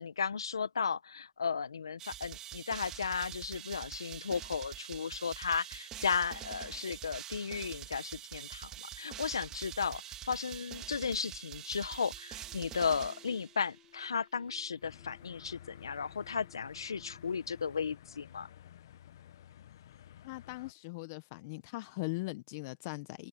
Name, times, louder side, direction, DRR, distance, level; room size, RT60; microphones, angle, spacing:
voice 1, 0.0-18.5, left 6 dB, 85° left, 1.2 m, -35 dB
sound 1, 2.0-13.9, right 12 dB, 25° right, 2.4 m, -46 dB
Alarm, 10.5-19.1, left 13 dB, 25° left, 5.4 m, -65 dB
sound 2, 14.8-20.7, left 11 dB, 60° left, 1.2 m, -54 dB
voice 2, 20.2-23.3, left 24 dB, 40° left, 1.0 m, -40 dB
hypercardioid pair, 135°, 2 cm